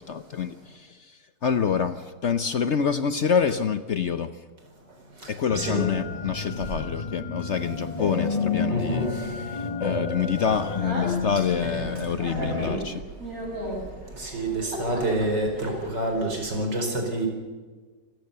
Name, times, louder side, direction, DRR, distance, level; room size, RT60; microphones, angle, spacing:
voice 1, 0.0-4.4 5.3-13.0, left 7 dB, 55° left, 11 dB, 0.9 m, -27 dB
sound 1, 5.5-12.8, left 5 dB, 25° left, 1.3 m, -30 dB
voice 2, 5.6-6.0 8.7-9.1 11.6-11.9 14.2-17.3, right 1 dB, 85° right, 3 dB, 5.2 m, -27 dB
Speech, 10.4-16.4, equal, 55° right, 8.0 m, -35 dB
26.5 x 16.0 x 6.8 m, 1.4 s
omnidirectional pair, 1.8 m